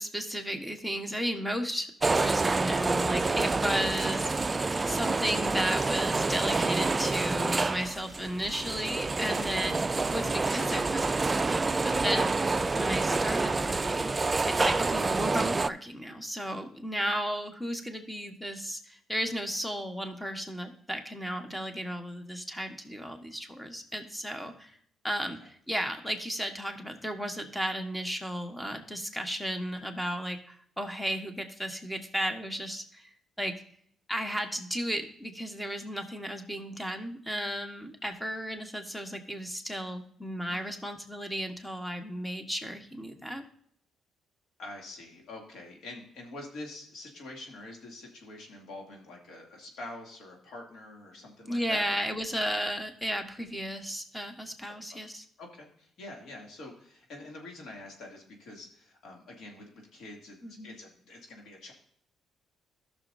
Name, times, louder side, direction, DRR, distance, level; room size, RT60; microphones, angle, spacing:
voice 1, 0.0-4.6 4.9-24.8 25.0-33.6 34.1-43.4 51.5-55.2 60.4-60.8, equal, 5° left, 6 dB, 1.3 m, -34 dB
sound 1, 2.0-15.7, right 3 dB, 25° right, 0.3 m, -28 dB
voice 2, 44.6-52.1 52.6-52.7 55.4-60.4 60.6-61.7, left 2 dB, 70° left, 0 dB, 2.6 m, -45 dB
14.5 x 6.4 x 2.7 m, 0.65 s
cardioid pair, 90°, 0 cm